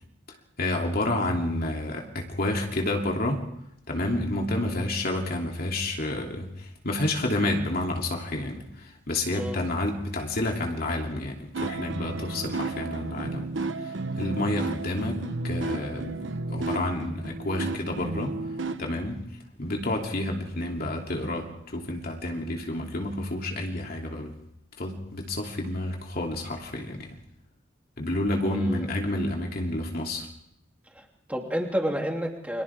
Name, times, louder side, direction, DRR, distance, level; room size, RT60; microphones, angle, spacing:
voice 1, 0.6-3.4 3.9-13.5 13.8-16.2 16.5-18.4 18.8-19.3 19.6-24.3 24.8-27.1 28.0-30.3, left 1 dB, 55° left, 1 dB, 2.9 m, -29 dB
sound 1, 11.5-18.9, right 3 dB, 80° right, 1.1 m, -33 dB
voice 2, 28.4-28.8 30.9-32.6, equal, 10° right, 1 dB, 2.9 m, -30 dB
29.5 x 24.5 x 3.6 m, 0.76 s
head